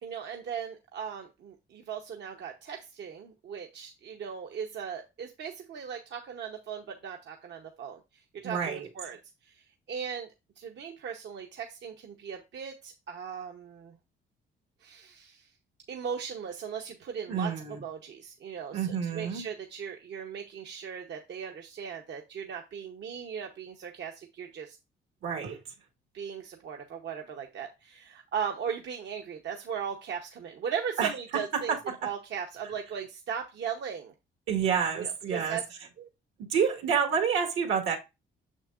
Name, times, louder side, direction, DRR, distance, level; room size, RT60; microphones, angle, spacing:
voice 1, 0.0-9.2 9.4-9.6 9.9-10.3 10.6-14.0 14.8-15.5 15.9-18.9 19.1-24.8 26.1-31.7 32.0-34.1 35.0-35.6, right 7 dB, 65° right, 0.8 m, -38 dB
voice 2, 8.4-8.9 17.3-17.8 18.7-19.4 25.2-25.6 31.0-31.1 31.5-32.0 34.5-35.6 36.4-38.0, right 7 dB, 80° right, 1.5 m, -28 dB
6.4 x 6.3 x 2.4 m
cardioid pair, 90°, 20 cm